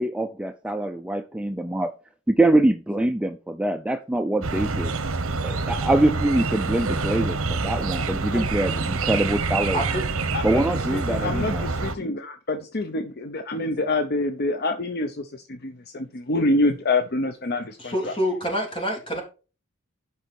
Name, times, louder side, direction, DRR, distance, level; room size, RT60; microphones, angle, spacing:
voice 1, 0.0-1.9 2.3-5.0 5.4-9.8 10.4-11.7, right 1 dB, 5° right, 0.4 m, -24 dB
sound 1, 4.4-12.0, right 3 dB, 75° right, 1.1 m, -26 dB
voice 2, 10.9-18.1, left 2 dB, 50° left, 0.8 m, -26 dB
voice 3, 17.8-19.2, equal, 25° left, 3.3 m, -26 dB
11.0 x 5.6 x 4.3 m
head